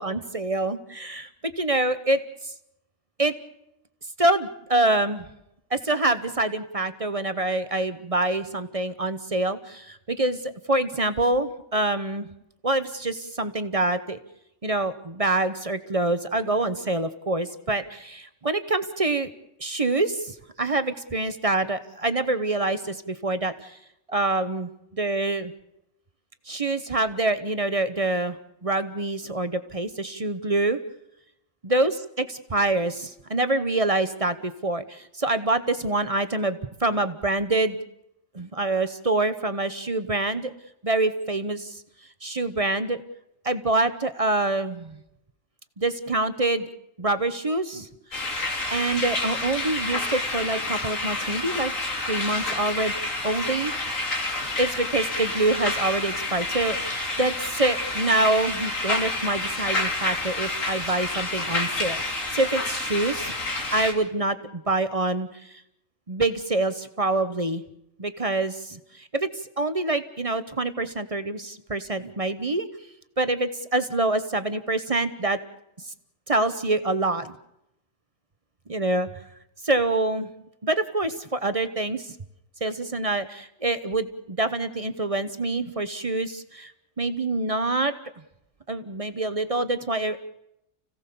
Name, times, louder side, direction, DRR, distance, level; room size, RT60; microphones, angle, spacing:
voice 1, 0.0-2.5 3.2-3.3 4.2-5.3 5.7-12.3 12.6-14.2 14.6-19.3 19.6-23.8 24.1-25.5 26.5-28.4 28.6-30.8 31.6-37.8 38.3-40.5 40.8-41.8 42.2-43.0 43.4-45.0 45.8-46.7 47.0-48.2 48.7-51.7 52.1-52.9 53.2-53.7 54.6-63.3 63.7-65.5 66.1-67.6 68.0-69.3 69.6-72.7 73.2-75.4 76.3-77.4 78.7-79.1 79.6-80.3 80.6-82.1 82.6-86.7 87.0-87.9 88.7-90.2, right 2 dB, 30° right, 11 dB, 1.0 m, -26 dB
sound 1, 48.1-63.9, left 2 dB, 85° left, 3.2 m, -29 dB
30.0 x 17.0 x 6.9 m, 0.83 s
omnidirectional pair, 1.3 m